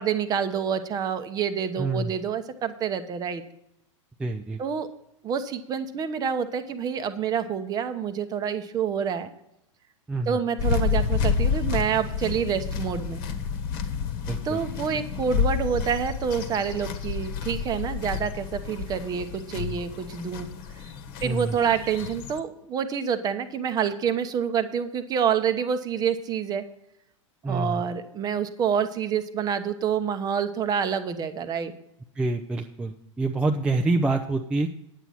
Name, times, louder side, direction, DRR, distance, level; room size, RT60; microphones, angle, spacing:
voice 1, 0.0-3.4 4.6-4.9 5.2-9.3 10.3-13.2 14.4-20.5 21.2-26.6 27.5-31.7, right 7 dB, 25° right, 10 dB, 0.8 m, -27 dB
voice 2, 1.8-2.1 4.2-4.6 10.1-10.4 14.3-14.6 21.2-21.6 27.4-27.8 32.2-34.7, right 3 dB, 5° right, 2 dB, 0.5 m, -26 dB
sound 1, 10.6-22.4, left 6 dB, 45° left, 1.3 m, -29 dB
10.0 x 8.1 x 5.6 m, 0.80 s
figure-of-eight pair, 95°, 17 cm